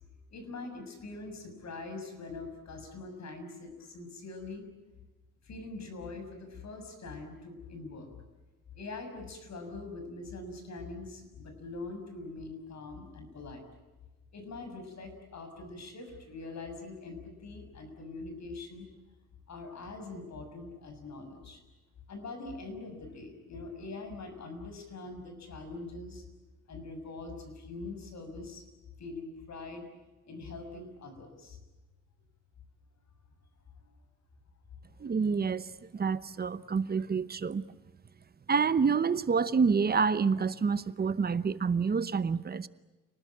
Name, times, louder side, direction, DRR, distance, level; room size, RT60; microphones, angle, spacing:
voice 1, 0.3-4.6 5.4-8.1 8.7-13.6 14.3-18.9 19.5-21.6 22.1-26.2 26.7-28.6 29.0-29.9 30.3-31.6, left 3 dB, 55° left, 6.7 m, -43 dB
voice 2, 35.0-37.6 38.5-42.7, right 5 dB, 30° right, 0.9 m, -28 dB
30.0 x 19.5 x 9.0 m
cardioid pair, 135°, 33 cm